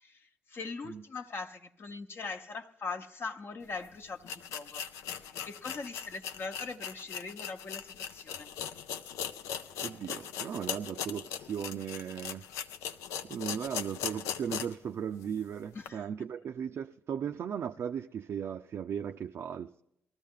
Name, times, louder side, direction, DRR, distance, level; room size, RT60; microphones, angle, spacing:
voice 1, 0.0-4.9 5.4-8.5 15.7-16.0, left 4 dB, 50° left, 1.0 m, -41 dB
sound 1, 3.7-3.8 4.2-14.9 15.2-15.3 15.8-15.9, left 8 dB, 80° left, 0.5 m, -39 dB
voice 2, 9.8-12.4 13.2-19.8, right 8 dB, 55° right, 0.4 m, -37 dB
19.0 x 13.0 x 3.7 m
hypercardioid pair, 50°, 5 cm